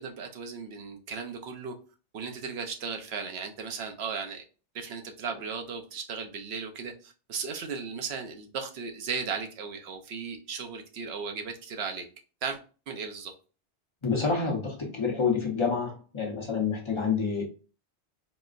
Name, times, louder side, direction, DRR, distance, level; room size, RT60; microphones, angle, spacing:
voice 1, 0.0-1.7 2.1-4.4 4.7-12.1 12.4-12.6 12.9-13.3, right 5 dB, 70° right, 4 dB, 0.9 m, -36 dB
voice 2, 14.0-17.4, left 5 dB, 30° left, -1 dB, 0.8 m, -28 dB
4.0 x 2.0 x 2.4 m, 0.35 s
omnidirectional pair, 1.2 m